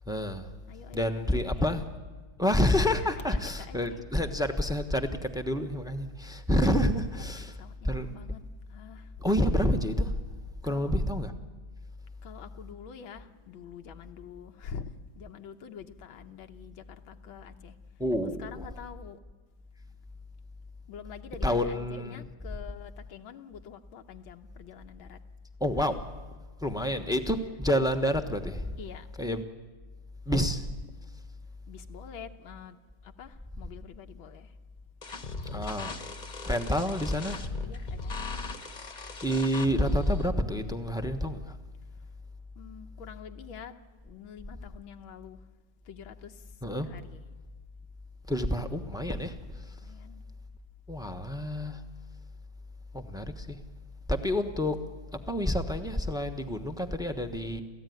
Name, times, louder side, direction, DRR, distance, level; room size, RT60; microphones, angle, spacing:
voice 1, 0.1-0.5 0.9-1.9 2.4-7.5 7.8-8.1 9.2-10.1 10.6-11.3 18.0-18.7 21.4-22.3 25.6-26.0 26.6-28.7 29.2-29.4 30.3-30.6 35.5-36.0 36.4-37.5 39.2-41.5 46.6-46.9 48.3-49.4 49.6-49.7 50.9-51.8 52.9-53.6 54.1-54.8 55.3-57.6, left 1 dB, 5° right, 0.8 m, -28 dB
voice 2, 0.7-1.8 2.9-4.0 7.1-7.2 7.6-8.4 8.7-9.2 10.6-11.0 12.2-17.8 18.4-19.2 20.9-25.2 26.7-27.0 28.8-29.1 31.7-34.5 37.6-38.2 42.6-43.8 44.0-45.4 45.8-47.2 49.8-50.2, left 7 dB, 85° left, 1.8 m, -46 dB
sound 1, 35.0-40.3, left 3 dB, 30° left, 1.0 m, -38 dB
30.0 x 14.5 x 9.4 m
omnidirectional pair, 2.2 m